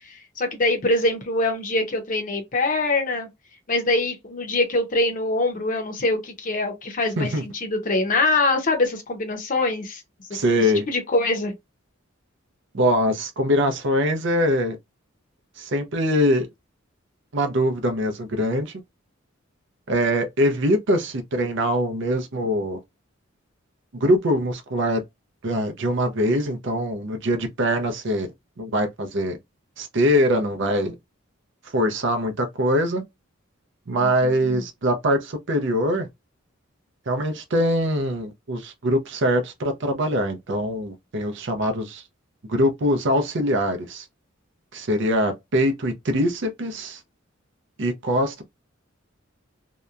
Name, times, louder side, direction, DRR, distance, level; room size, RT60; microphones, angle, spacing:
voice 1, 0.4-3.3 3.7-10.0 10.9-11.5 34.0-34.6, left 2 dB, 40° left, 0.7 m, -24 dB
voice 2, 10.3-10.8 12.7-14.8 15.6-16.5 17.3-18.8 19.9-22.8 23.9-25.0 25.4-28.3 28.6-29.4 29.8-30.9 31.7-33.0 33.9-36.1 37.1-42.0 42.5-44.0 44.7-47.0 47.8-48.4, equal, 60° right, 0.6 m, -23 dB
2.8 x 2.1 x 2.4 m
head